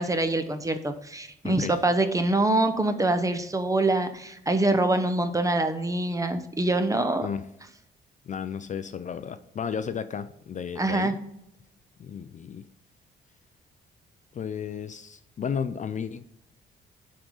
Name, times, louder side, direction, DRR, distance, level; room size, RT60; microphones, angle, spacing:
voice 1, 0.0-7.2 10.8-11.2, right 2 dB, 15° right, 9 dB, 0.9 m, -25 dB
voice 2, 8.2-11.1 12.0-12.7 14.3-16.2, left 7 dB, 40° left, 12 dB, 0.4 m, -33 dB
11.0 x 3.7 x 3.9 m, 0.82 s
cardioid pair, 90°, 20 cm